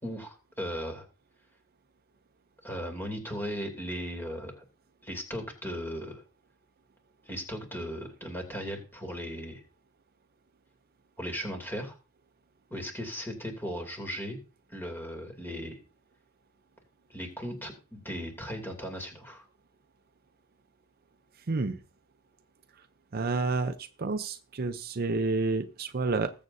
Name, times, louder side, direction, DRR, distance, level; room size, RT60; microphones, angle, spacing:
voice 1, 0.0-1.1 2.6-4.6 5.0-6.2 7.2-9.6 11.2-12.0 12.7-14.4 14.7-15.8 17.1-19.4, equal, 10° left, 4 dB, 2.7 m, -37 dB
voice 2, 21.5-21.8 23.1-26.3, right 3 dB, 45° right, 10 dB, 0.6 m, -29 dB
20.0 x 7.4 x 2.6 m, 0.33 s
head